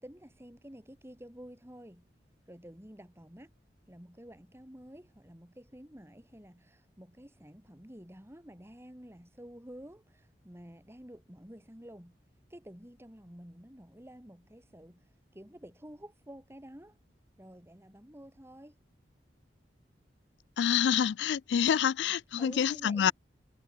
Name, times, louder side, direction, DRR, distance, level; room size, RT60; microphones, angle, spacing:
voice 1, 0.0-2.1 2.5-3.5 3.9-12.2 12.5-17.0 17.4-18.8 22.4-23.1, equal, 15° right, 4.0 m, -50 dB
voice 2, 20.6-23.1, left 8 dB, 80° left, 0.4 m, -27 dB
head